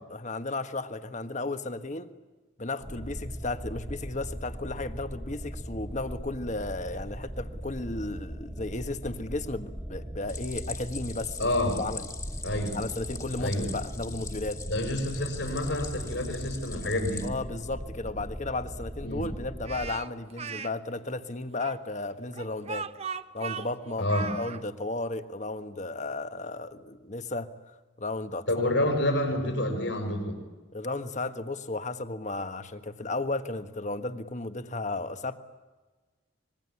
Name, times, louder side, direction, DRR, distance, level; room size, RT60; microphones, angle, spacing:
voice 1, 0.1-2.1 2.6-12.1 12.7-14.6 17.2-22.9 23.3-24.1 24.4-27.5 28.0-28.7 30.7-35.3, left 2 dB, 40° left, 9 dB, 1.4 m, -34 dB
sound 1, 2.8-20.0, equal, 10° right, 1.2 m, -39 dB
Stream, 10.3-17.3, left 5 dB, 15° left, 2.0 m, -43 dB
voice 2, 11.4-11.8 12.4-12.8 13.4-13.7 14.7-17.3 19.0-19.2 24.0-24.3 28.5-30.3, left 1 dB, 70° left, 4 dB, 6.6 m, -28 dB
Speech, 19.6-20.7 21.6-24.6, right 5 dB, 35° right, 0.9 m, -37 dB
25.5 x 21.5 x 9.9 m, 1.3 s
head